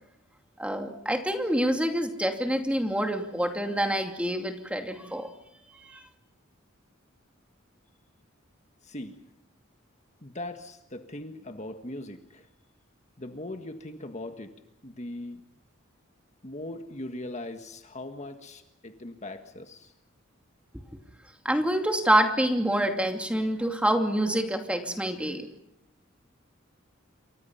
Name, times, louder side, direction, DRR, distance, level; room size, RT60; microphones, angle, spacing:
voice 1, 0.6-5.3 5.7-6.0 21.4-25.5, right 1 dB, 5° right, 4 dB, 2.5 m, -26 dB
voice 2, 8.8-9.2 10.2-12.5 13.2-14.6 14.8-15.4 16.4-19.9, left 1 dB, 35° left, 6 dB, 1.6 m, -40 dB
28.5 x 24.0 x 5.7 m, 0.84 s
head